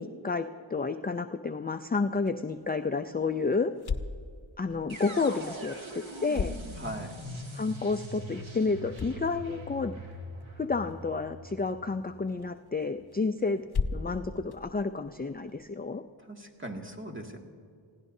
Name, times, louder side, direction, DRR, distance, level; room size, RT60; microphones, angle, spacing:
voice 1, 0.0-3.7 4.6-6.5 7.5-9.9 10.6-13.6 13.9-16.0, left 4 dB, 20° left, 7 dB, 0.5 m, -30 dB
sound 1, 2.1-15.7, left 5 dB, 50° left, 1.0 m, -40 dB
sound 2, 4.9-12.8, right 1 dB, 70° right, 2.5 m, -43 dB
voice 2, 6.8-7.2 16.3-17.4, right 1 dB, 25° right, 1 dB, 2.1 m, -39 dB
28.5 x 17.0 x 2.7 m, 2.3 s
wide cardioid pair, 70°, 49 cm